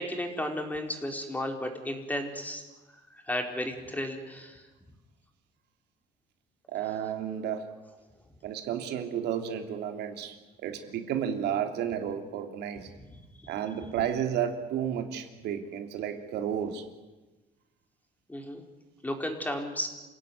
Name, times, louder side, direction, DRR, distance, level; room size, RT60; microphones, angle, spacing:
voice 1, 0.0-2.6 3.1-4.7 13.4-13.5 18.3-18.6 19.0-19.9, left 1 dB, 10° left, 4 dB, 4.4 m, -33 dB
voice 2, 6.7-7.7 8.4-10.4 10.6-12.9 13.5-16.8, right 9 dB, 80° right, 5 dB, 3.2 m, -32 dB
28.0 x 17.0 x 9.5 m, 1.2 s
cardioid pair, 110°, 17 cm